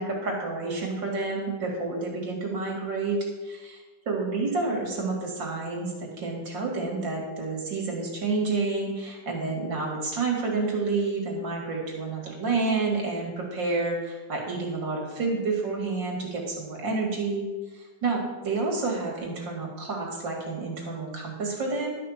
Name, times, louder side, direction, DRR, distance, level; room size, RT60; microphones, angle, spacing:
voice 1, 0.0-3.8 4.1-17.4 17.7-21.9, right 3 dB, 80° right, -1 dB, 3.2 m, -29 dB
12.0 x 6.0 x 6.8 m, 1.3 s
omnidirectional pair, 2.0 m